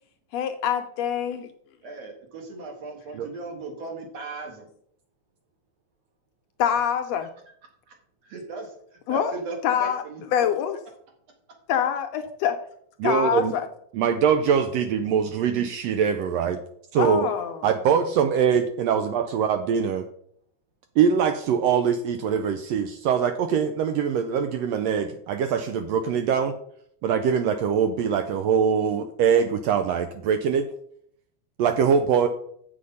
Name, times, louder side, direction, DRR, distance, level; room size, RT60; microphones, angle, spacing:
voice 1, 0.3-1.5 6.6-7.3 9.1-9.3 9.6-10.0 10.3-10.8 11.7-12.6 13.0-13.7 17.0-17.6, left 9 dB, 75° left, 6 dB, 1.6 m, -25 dB
voice 2, 1.8-4.7 8.2-8.7 9.1-10.5, right 3 dB, 60° right, 2 dB, 2.7 m, -37 dB
voice 3, 13.0-13.5 13.9-16.6 16.9-17.3 17.6-20.0 21.0-26.5 27.0-30.7 31.6-32.3, right 7 dB, 80° right, 8 dB, 1.6 m, -23 dB
7.8 x 6.5 x 5.3 m, 0.67 s
omnidirectional pair, 3.4 m